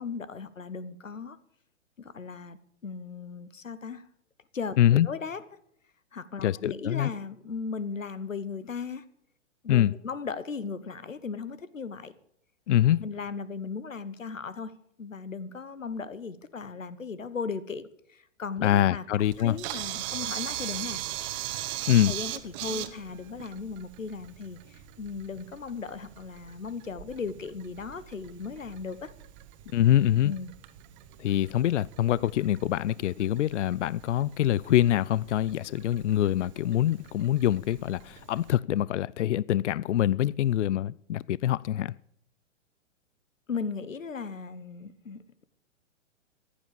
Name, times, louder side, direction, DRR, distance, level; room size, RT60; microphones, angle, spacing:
voice 1, 0.0-1.4 2.0-4.0 4.5-5.4 6.1-9.0 9.6-12.1 13.0-14.7 15.0-19.0 19.4-21.0 22.1-29.1 30.2-30.5 43.5-45.4, left 5 dB, 85° left, 1.3 m, -37 dB
voice 2, 4.8-5.1 6.4-7.1 9.7-10.0 12.7-13.0 18.6-19.6 21.9-22.2 29.7-30.3 31.2-41.9, left 12 dB, 70° left, 0.5 m, -24 dB
Camera, 19.2-38.5, right 14 dB, 35° right, 1.3 m, -41 dB
14.5 x 11.5 x 7.0 m
figure-of-eight pair, 115°, 38 cm